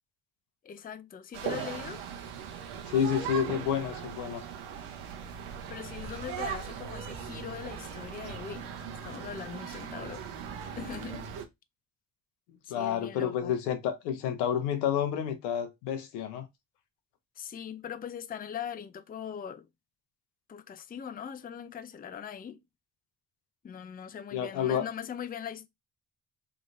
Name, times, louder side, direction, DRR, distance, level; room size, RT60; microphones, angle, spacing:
voice 1, 0.6-2.1 5.7-8.7 9.0-10.3 10.8-11.3 12.6-13.5 17.4-19.7 20.5-22.6 23.6-25.7, left 8 dB, 20° left, 0.4 m, -41 dB
sound 1, 1.3-11.5, right 7 dB, 75° right, 0.9 m, -39 dB
voice 2, 2.9-4.4 12.7-16.4 24.3-24.8, left 8 dB, 90° left, 0.8 m, -29 dB
3.8 x 3.1 x 2.5 m
hypercardioid pair, 55°, 50 cm